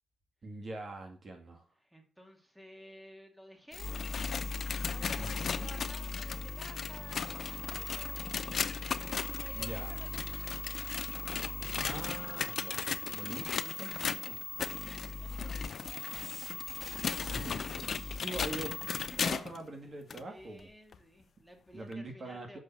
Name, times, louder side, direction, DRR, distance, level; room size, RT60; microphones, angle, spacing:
voice 1, 0.4-1.7 5.2-5.5 9.5-9.9 11.7-12.8 13.1-14.4 17.3-17.6 17.8-18.7 19.2-20.7 21.7-22.6, right 2 dB, 45° right, 3 dB, 1.9 m, -43 dB
voice 2, 1.8-4.0 4.7-11.0 11.3-12.1 13.4-13.5 14.6-18.5 18.9-19.2 20.2-22.6, equal, 5° right, 3 dB, 2.3 m, -54 dB
sound 1, 3.7-19.6 20.1-20.2 20.9-21.0 21.9-22.0, left 6 dB, 55° left, 0.7 m, -38 dB
sound 2, 3.7-19.3, left 4 dB, 30° left, 1.6 m, -40 dB
6.5 x 6.2 x 7.2 m, 0.39 s
cardioid pair, 90°, 0 cm